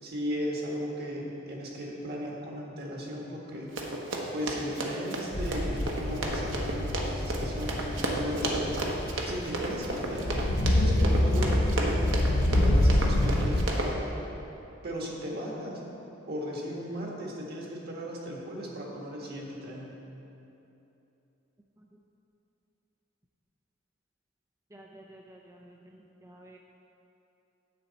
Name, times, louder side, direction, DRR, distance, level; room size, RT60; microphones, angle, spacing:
voice 1, 0.0-3.7 4.3-8.8 9.2-14.1 14.8-15.8 16.3-19.9, equal, 55° right, -2 dB, 1.6 m, -36 dB
Run, 3.8-13.9, right 2 dB, 70° right, 1.1 m, -33 dB
sound 1, 5.3-13.7, left 1 dB, 55° left, 0.7 m, -27 dB
voice 2, 24.7-26.6, right 1 dB, 15° right, -1 dB, 0.4 m, -52 dB
10.0 x 7.9 x 4.1 m, 2.9 s
head